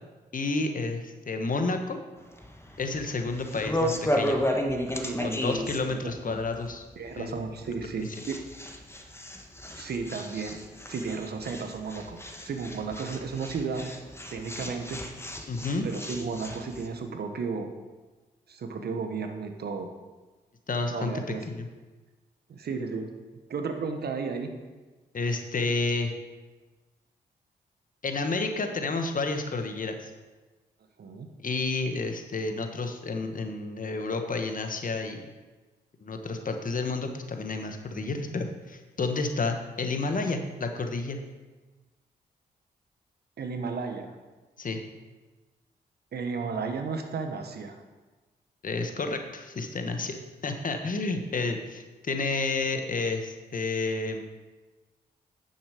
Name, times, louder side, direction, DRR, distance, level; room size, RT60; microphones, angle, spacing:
voice 1, 0.3-2.0 2.8-4.4 5.2-6.8 7.2-7.4 15.5-15.9 20.7-21.1 21.5-21.7 25.1-26.1 28.0-30.1 31.4-35.3 36.0-41.2 44.6-44.8 48.6-54.2, left 3 dB, 50° left, 5 dB, 1.4 m, -30 dB
sound 1, 2.2-16.9, equal, 15° left, 1.5 m, -34 dB
voice 2, 5.0-5.4 5.9-6.4 6.9-8.4 9.7-10.6 10.9-13.9 14.3-15.0 15.8-17.7 18.5-19.9 20.9-21.5 22.5-23.1 23.5-24.5 31.0-31.3 43.4-44.1 46.1-47.8, right 5 dB, 65° right, 6 dB, 1.3 m, -33 dB
9.5 x 7.2 x 5.1 m, 1.2 s
supercardioid pair, 45°, 18 cm